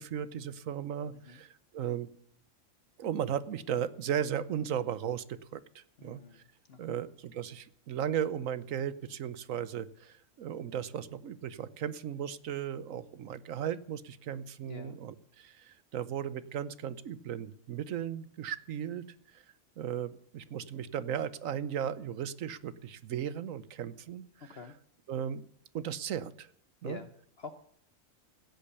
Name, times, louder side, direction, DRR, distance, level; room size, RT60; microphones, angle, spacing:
voice 1, 0.0-2.1 3.0-6.4 6.8-19.0 19.3-19.4 19.8-24.6 25.1-25.4 25.7-26.5 26.8-27.0, right 9 dB, 85° right, 15 dB, 1.2 m, -36 dB
voice 2, 6.0-7.1 14.6-15.0 24.4-24.7 26.8-27.1 27.4-27.5, left 5 dB, 55° left, 8 dB, 1.1 m, -47 dB
16.0 x 8.5 x 6.9 m, 0.67 s
omnidirectional pair, 1.4 m